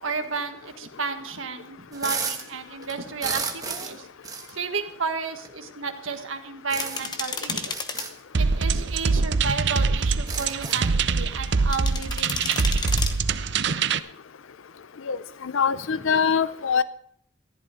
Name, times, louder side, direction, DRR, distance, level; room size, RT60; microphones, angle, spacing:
voice 1, 0.0-4.1 4.5-7.7 8.3-13.1 16.0-16.1, right 4 dB, 80° right, 6 dB, 1.6 m, -32 dB
sound 1, 1.9-2.5 2.8-4.0 4.2-4.5 5.4-5.5 6.7-7.2 7.6-8.1 9.1-9.2 9.4-9.5 10.0-10.9, right 5 dB, 20° right, 1.2 m, -32 dB
sound 2, 6.8-8.1 11.7-13.1, left 4 dB, 20° left, 0.9 m, -31 dB
sound 3, 8.3-14.0, right 4 dB, 55° right, 0.6 m, -24 dB
voice 2, 15.1-16.8, left 6 dB, 75° left, 16 dB, 0.5 m, -23 dB
14.5 x 11.5 x 5.0 m, 0.66 s
head